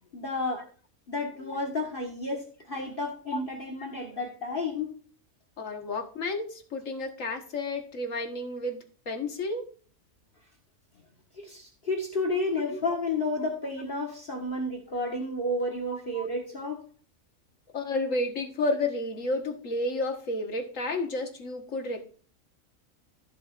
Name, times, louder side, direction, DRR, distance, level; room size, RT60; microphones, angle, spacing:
voice 1, 0.1-0.6 1.1-2.4 2.7-4.9 11.4-16.8, left 2 dB, 40° left, 2 dB, 1.7 m, -31 dB
voice 2, 5.6-9.7 12.7-12.9 15.9-16.3 17.7-22.0, left 2 dB, 70° left, 4 dB, 1.7 m, -31 dB
13.5 x 7.6 x 2.5 m, 0.41 s
omnidirectional pair, 1.4 m